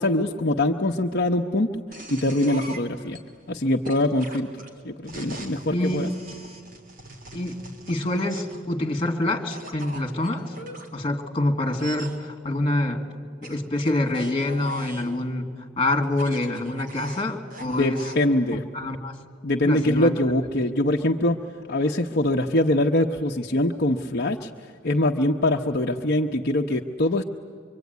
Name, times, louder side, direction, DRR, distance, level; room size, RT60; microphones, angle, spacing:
voice 1, 0.0-1.7 2.1-3.2 3.5-4.5 4.8-6.1 17.6-18.6 19.4-21.4 21.7-24.5 24.8-27.2, left 1 dB, 55° left, 1 dB, 1.0 m, -23 dB
sound 1, 1.9-3.2 3.8-8.7 9.5-10.9 11.7-12.2 13.4-15.1 16.0-18.2, right 2 dB, 50° right, 3.8 m, -42 dB
voice 2, 5.7-6.1 7.3-7.6 7.9-10.5 10.9-13.0 13.4-15.5 15.8-18.0 18.7-19.1 19.6-20.1, left 1 dB, 30° left, 3 dB, 2.6 m, -26 dB
25.0 x 24.5 x 9.5 m, 2.2 s
head